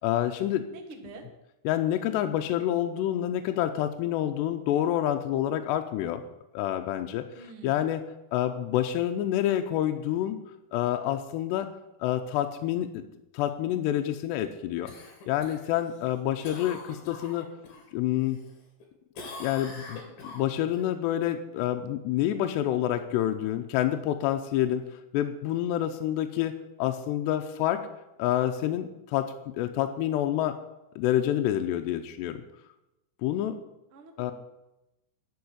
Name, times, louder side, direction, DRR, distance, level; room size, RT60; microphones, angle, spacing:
voice 1, 0.0-0.7 1.6-6.2 6.5-8.0 8.3-10.4 10.7-11.7 12.0-13.0 13.3-14.9 15.3-17.5 17.9-18.4 19.4-24.8 25.1-27.8 28.2-30.6 31.0-32.4 33.2-33.6 34.2-34.3, left 12 dB, 80° left, 6 dB, 2.6 m, -28 dB
voice 2, 0.7-1.2 7.4-7.8 33.9-34.3, right 3 dB, 75° right, 4 dB, 1.2 m, -46 dB
Cough, 14.8-17.8 18.2-18.8 19.1-20.8 25.3-25.4, left 3 dB, 55° left, 4.0 m, -44 dB
11.5 x 7.1 x 9.7 m, 0.92 s
omnidirectional pair, 5.5 m